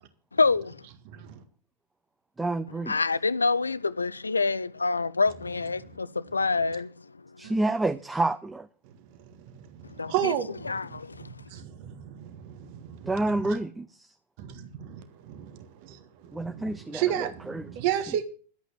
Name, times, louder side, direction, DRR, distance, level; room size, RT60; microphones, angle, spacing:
voice 1, 0.3-0.9 2.9-7.1 7.4-7.5 9.9-10.3 10.7-11.3, left 4 dB, 80° left, 0.6 m, -27 dB
voice 2, 1.0-1.4 8.8-13.6 14.4-18.2, right 10 dB, 45° right, 1.7 m, -34 dB
voice 3, 2.4-3.0 7.4-8.7 13.0-14.1 16.3-17.6, right 2 dB, 10° right, 0.7 m, -29 dB
12.0 x 8.4 x 7.6 m
figure-of-eight pair, 90°, 0 cm